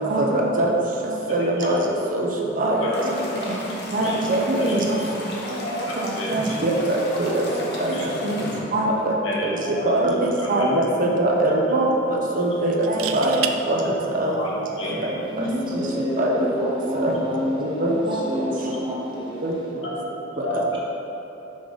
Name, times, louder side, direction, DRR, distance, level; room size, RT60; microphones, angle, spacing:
voice 1, 0.1-0.7 1.3-1.8 2.2-2.3 2.6-2.9 3.9-4.8 6.3-7.3 8.2-8.4 8.7-9.1 9.9-11.9 12.4-12.7 13.1-13.4 13.7-13.8 14.1-14.3 16.2-16.5 16.9-17.1 17.6-18.2 19.4-19.5, right 1 dB, 45° right, -1 dB, 0.6 m, -22 dB
voice 2, 1.2-2.0 2.8-3.5 3.9-4.2 4.6-5.1 5.6-6.8 7.4-8.7 9.2-10.7 11.7-11.9 12.5-13.0 13.6-13.7 14.0-15.5 16.2-16.5 17.0-17.2 18.6-18.7 19.8-20.8, equal, 75° left, -6 dB, 1.4 m, -32 dB
sound 1, 2.9-8.6, left 1 dB, 55° left, 0.9 m, -36 dB
sound 2, 9.9-10.1 10.5-10.6 12.7-13.6 15.4-15.6, right 9 dB, 85° right, 0.3 m, -29 dB
voice 3, 15.3-19.4, left 1 dB, 25° right, -5 dB, 1.0 m, -28 dB
5.3 x 3.8 x 5.0 m, 3.0 s
head